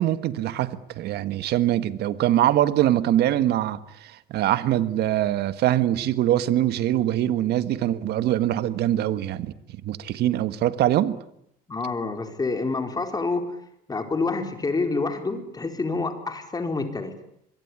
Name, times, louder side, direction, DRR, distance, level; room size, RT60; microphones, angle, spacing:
voice 1, 0.0-9.5 9.8-11.2, right 12 dB, 75° right, 1.6 m, -23 dB
voice 2, 11.7-13.6 13.9-17.1, left 3 dB, 25° left, 4.4 m, -27 dB
25.5 x 22.5 x 9.7 m
cardioid pair, 110°, 17 cm